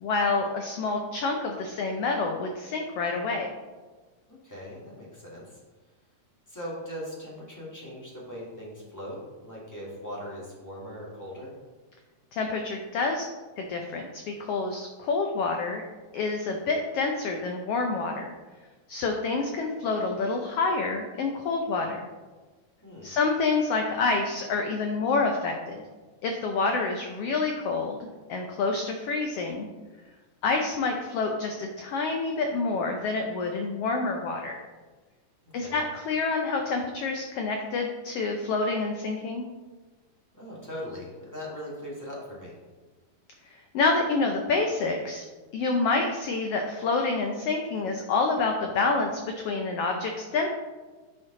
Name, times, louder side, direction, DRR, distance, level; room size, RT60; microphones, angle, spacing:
voice 1, 0.0-3.5 12.3-13.3 13.6-15.8 16.1-18.3 18.9-22.1 23.0-25.8 26.2-28.0 28.3-29.7 30.4-34.6 35.5-39.4 43.5-45.2 45.5-50.5, left 3 dB, 90° left, 2 dB, 1.3 m, -28 dB
voice 2, 4.3-5.6 6.5-11.5 22.8-23.1 35.4-35.8 40.3-42.5, equal, 15° left, -5 dB, 0.6 m, -40 dB
10.5 x 4.5 x 3.7 m, 1.3 s
omnidirectional pair, 3.5 m